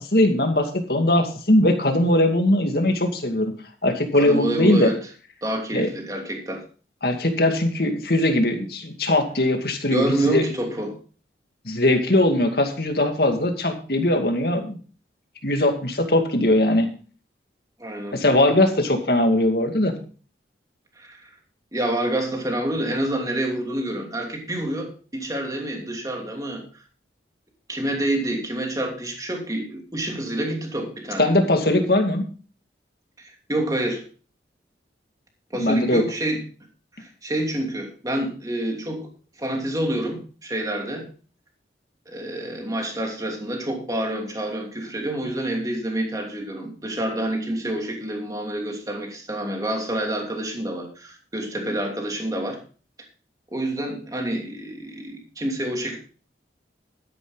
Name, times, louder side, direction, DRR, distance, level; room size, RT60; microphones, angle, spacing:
voice 1, 0.0-3.5 3.8-4.9 5.7-5.9 7.0-10.5 11.6-14.8 15.4-16.9 18.1-19.9 31.2-32.2 35.6-36.0, left 1 dB, 60° left, 5 dB, 2.4 m, -20 dB
voice 2, 4.1-5.0 5.4-6.6 9.9-11.0 17.8-18.2 21.0-21.3 21.7-26.7 27.7-31.3 33.2-34.0 35.5-36.4 37.0-39.1 39.4-41.1 42.1-52.6 53.5-56.0, right 1 dB, 20° right, 2 dB, 2.9 m, -28 dB
12.5 x 11.0 x 4.0 m, 0.38 s
head